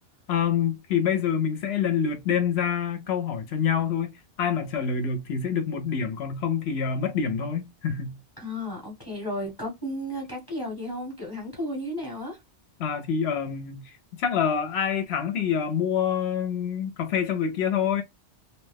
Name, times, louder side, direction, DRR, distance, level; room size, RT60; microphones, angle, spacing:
voice 1, 0.3-4.1 4.4-8.2 12.8-18.0, left 7 dB, 70° left, 0.8 m, -26 dB
voice 2, 8.4-12.4, left 1 dB, 25° left, 0.9 m, -33 dB
2.8 x 2.1 x 3.3 m
omnidirectional pair, 1.2 m